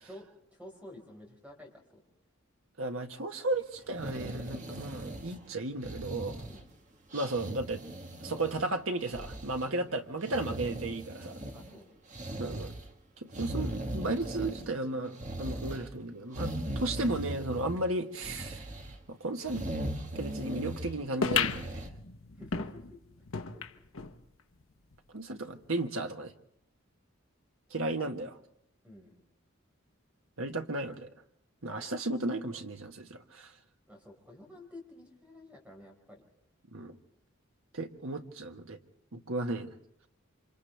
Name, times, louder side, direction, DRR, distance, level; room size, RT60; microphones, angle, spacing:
voice 1, 0.0-2.0 6.4-6.6 11.5-11.9 22.4-23.0 23.4-23.6 28.8-29.1 33.9-36.2, left 1 dB, 5° right, 0 dB, 5.0 m, -50 dB
voice 2, 2.8-6.4 7.1-7.8 8.2-11.4 12.4-12.7 13.2-18.7 19.1-19.6 20.1-21.8 25.1-26.3 27.7-28.4 30.4-31.1 31.6-33.5 36.7-37.0 37.7-38.8 39.1-39.7, right 2 dB, 75° right, 5 dB, 1.5 m, -34 dB
sound 1, 3.9-5.5 5.8-6.7 7.1-8.7 9.0-9.7 10.2-11.7 12.1-12.9 13.3-14.8 15.1-15.9 16.3-17.8 18.2-18.9 19.4-20.9 21.3-21.9, right 1 dB, 35° right, 1.7 m, -39 dB
sound 2, 21.2-24.2 24.6-24.7 24.9-25.0 25.8-25.9, left 6 dB, 70° left, 1.0 m, -34 dB
29.0 x 26.5 x 3.5 m, 0.76 s
head